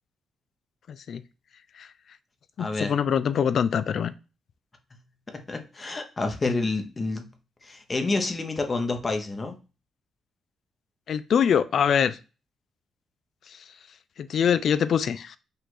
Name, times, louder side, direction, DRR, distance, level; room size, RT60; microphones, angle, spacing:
voice 1, 0.9-1.2 1.8-1.9 2.6-4.1 11.1-12.2 14.2-15.4, left 8 dB, 65° left, 14 dB, 0.4 m, -24 dB
voice 2, 2.6-2.9 5.3-7.3 7.6-9.6, left 3 dB, 30° left, 5 dB, 0.9 m, -28 dB
5.6 x 2.5 x 3.8 m, 0.32 s
cardioid pair, 90°, 0 cm